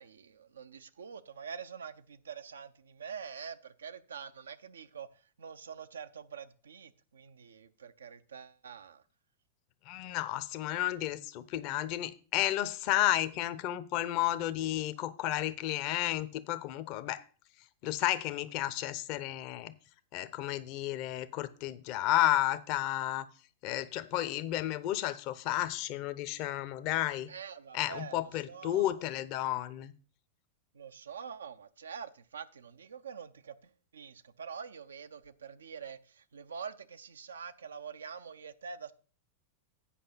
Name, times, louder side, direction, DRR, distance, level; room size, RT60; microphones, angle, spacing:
voice 1, 0.0-9.0 27.3-28.2 28.5-28.9 30.7-38.9, right 6 dB, 70° right, 0.5 m, -45 dB
voice 2, 9.9-17.2 17.8-19.7 20.1-23.3 23.6-27.3 27.7-29.9, left 14 dB, 45° left, 0.7 m, -32 dB
8.4 x 5.4 x 5.6 m
figure-of-eight pair, 90°, 0 cm